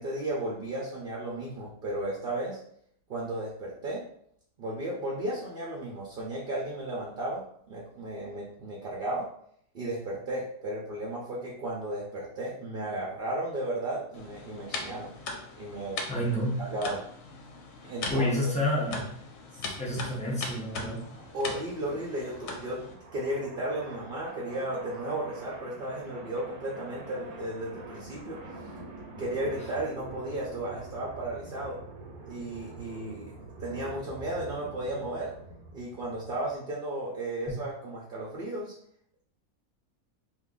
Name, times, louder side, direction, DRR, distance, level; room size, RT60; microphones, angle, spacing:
voice 1, 0.0-2.6 3.1-4.0 4.6-9.3 9.7-15.1 15.6-16.0 16.6-17.0 17.8-18.5 19.5-19.7 21.3-28.4 29.2-31.8 32.3-33.3 33.6-35.3 35.7-38.7, right 1 dB, 55° right, -4 dB, 0.6 m, -34 dB
sound 1, 14.1-22.9, left 3 dB, 70° left, 1.0 m, -40 dB
voice 2, 16.1-16.6 18.1-19.1 19.8-21.0, left 1 dB, 10° left, -5 dB, 0.4 m, -29 dB
sound 2, 19.0-36.5, right 2 dB, 80° right, 1.2 m, -46 dB
2.7 x 2.6 x 3.7 m, 0.67 s
omnidirectional pair, 1.6 m